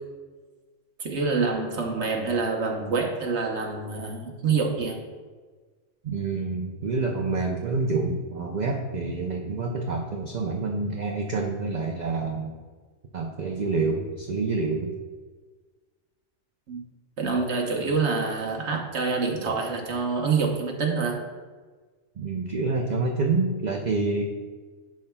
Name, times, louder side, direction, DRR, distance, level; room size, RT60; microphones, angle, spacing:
voice 1, 1.0-5.0 16.7-16.8 17.2-21.2, right 4 dB, 65° right, 1 dB, 1.2 m, -26 dB
voice 2, 6.0-12.5 13.1-14.9 22.2-24.2, right 3 dB, 50° right, 1 dB, 0.6 m, -27 dB
10.5 x 5.7 x 2.2 m, 1.4 s
omnidirectional pair, 1.2 m